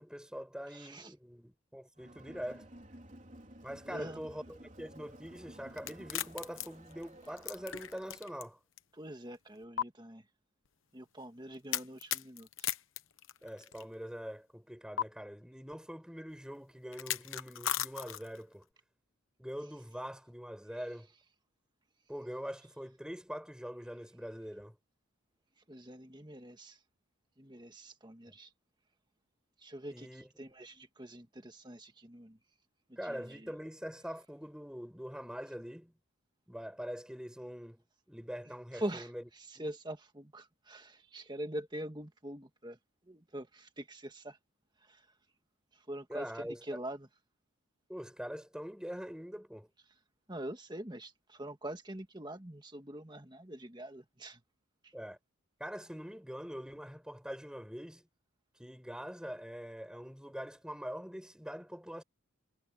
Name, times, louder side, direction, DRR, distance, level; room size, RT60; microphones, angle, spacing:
voice 1, 0.0-2.7 3.6-8.6 13.4-18.6 19.4-21.1 22.1-24.7 29.9-30.5 33.0-35.9 36.5-39.3 39.5-39.7 46.1-46.8 47.9-49.7 54.9-55.2 55.6-58.0 58.6-62.0, equal, 5° right, 5.3 m, -44 dB
voice 2, 0.7-1.1 3.9-4.2 8.9-10.2 10.9-12.5 25.7-26.8 27.4-28.5 29.6-30.1 30.4-32.4 33.0-33.5 38.7-39.1 39.4-42.8 43.1-44.4 44.9-45.0 45.9-47.1 50.3-54.4, right 1 dB, 20° right, 1.7 m, -44 dB
Crowd, 1.9-8.3, right 1 dB, 35° right, 3.8 m, -54 dB
sound 1, 5.8-8.4 8.8-8.9 9.8-9.9 11.7-13.8 15.0-15.1 16.9-18.4, left 11 dB, 70° left, 1.0 m, -36 dB
head